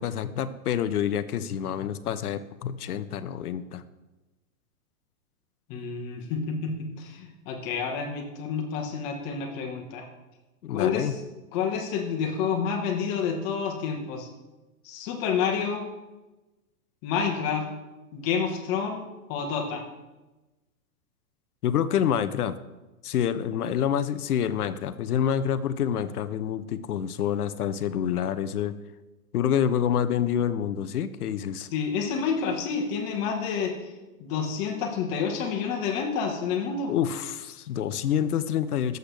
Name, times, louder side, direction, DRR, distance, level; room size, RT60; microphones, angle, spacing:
voice 1, 0.0-3.8 10.6-11.1 21.6-22.6 23.0-28.7 29.3-31.7 36.9-39.0, left 9 dB, 85° left, 12 dB, 0.8 m, -27 dB
voice 2, 5.7-10.1 10.7-11.2 11.5-14.3 14.8-15.9 17.0-17.7 18.1-19.0 19.3-19.8 23.5-23.7 31.7-33.7 34.2-36.9, left 6 dB, 35° left, 3 dB, 1.5 m, -29 dB
11.5 x 8.0 x 3.4 m, 1.1 s
hypercardioid pair, 145°, 44 cm